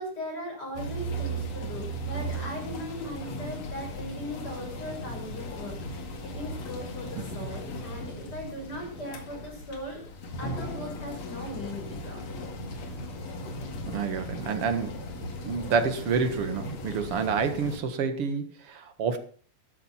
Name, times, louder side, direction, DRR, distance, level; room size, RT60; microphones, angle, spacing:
voice 1, 0.0-10.0 10.4-12.2, equal, 30° left, 7.0 m, -39 dB
sound 1, 0.7-17.8, equal, 55° left, 3.0 m, -37 dB
voice 2, 13.9-15.0 15.5-19.2, right 5 dB, 50° right, 2.1 m, -28 dB
13.5 x 12.0 x 5.7 m
omnidirectional pair, 3.8 m